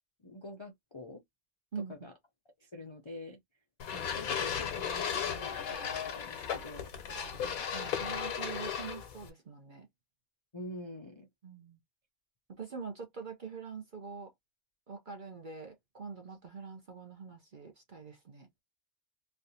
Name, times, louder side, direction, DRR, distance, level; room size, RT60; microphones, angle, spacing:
voice 1, 0.2-1.2 1.8-2.1 2.6-3.4 3.9-6.9 7.7-7.9 10.5-11.3, left 1 dB, 35° left, 0.4 m, -46 dB
voice 2, 1.7-2.1 7.4-9.9 11.4-11.8 12.5-14.3 14.9-18.5, right 5 dB, 45° right, 0.7 m, -44 dB
sound 1, 3.8-9.3, left 7 dB, 90° left, 1.3 m, -36 dB
3.3 x 2.5 x 2.7 m
omnidirectional pair, 1.4 m